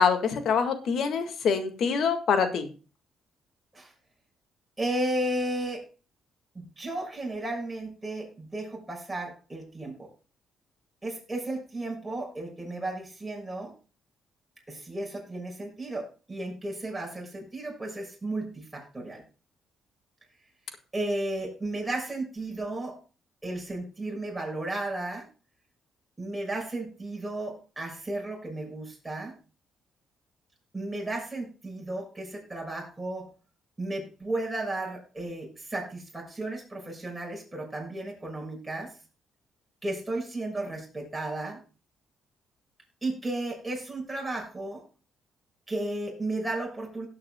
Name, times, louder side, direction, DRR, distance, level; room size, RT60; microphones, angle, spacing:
voice 1, 0.0-2.7, left 6 dB, 70° left, 7 dB, 1.8 m, -25 dB
voice 2, 4.8-5.8 6.5-10.1 11.0-13.7 14.7-19.2 20.9-23.0 23.4-25.3 26.2-29.3 30.7-33.3 33.8-38.9 39.8-41.6 43.0-44.8 45.7-47.1, right 2 dB, 15° right, 0 dB, 6.4 m, -34 dB
17.5 x 8.6 x 2.3 m, 0.34 s
cardioid pair, 90°, 0 cm